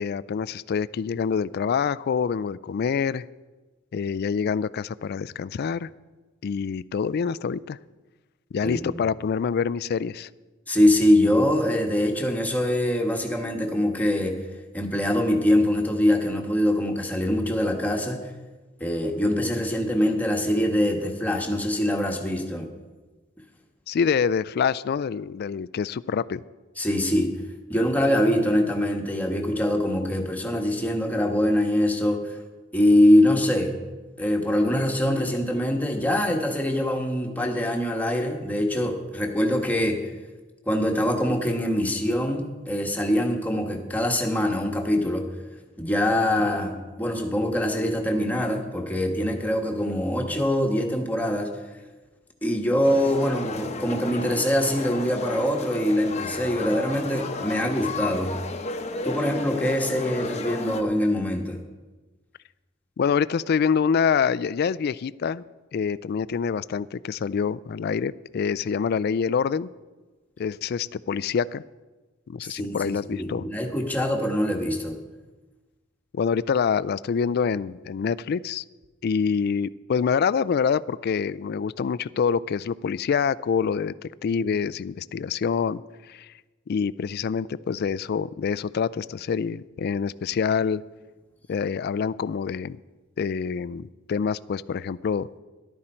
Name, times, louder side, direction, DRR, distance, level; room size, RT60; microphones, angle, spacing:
voice 1, 0.0-3.2 3.9-5.9 6.4-7.8 8.5-10.3 23.9-26.4 46.4-46.5 63.0-65.4 65.7-69.7 70.4-71.6 72.3-73.5 76.1-78.6 79.0-83.9 84.2-85.8 86.1-86.3 86.7-90.8 91.5-92.8 93.2-95.3, left 6 dB, 50° left, 16 dB, 0.3 m, -26 dB
voice 2, 8.6-9.0 10.7-14.4 14.7-18.3 18.8-22.7 26.8-27.3 27.7-32.4 32.7-33.7 34.2-40.1 40.7-45.3 45.8-51.5 52.4-58.4 59.0-61.6 72.4-74.9, left 1 dB, 10° left, 2 dB, 1.4 m, -23 dB
sound 1, 52.8-60.8, left 3 dB, 35° left, 0.8 m, -33 dB
14.0 x 11.5 x 4.4 m, 1.2 s
head